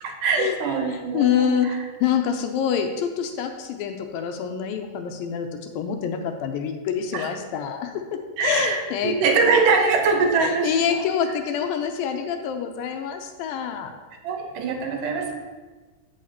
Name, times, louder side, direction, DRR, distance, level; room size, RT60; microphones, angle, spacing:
voice 1, 0.0-1.8 7.1-7.3 8.4-11.4 14.2-15.3, right 4 dB, 70° right, 3 dB, 2.4 m, -23 dB
voice 2, 0.9-5.5 5.8-7.9 8.4-9.2 10.4-13.9, left 7 dB, 85° left, 5 dB, 2.4 m, -26 dB
15.0 x 5.7 x 2.8 m, 1.3 s
omnidirectional pair, 4.1 m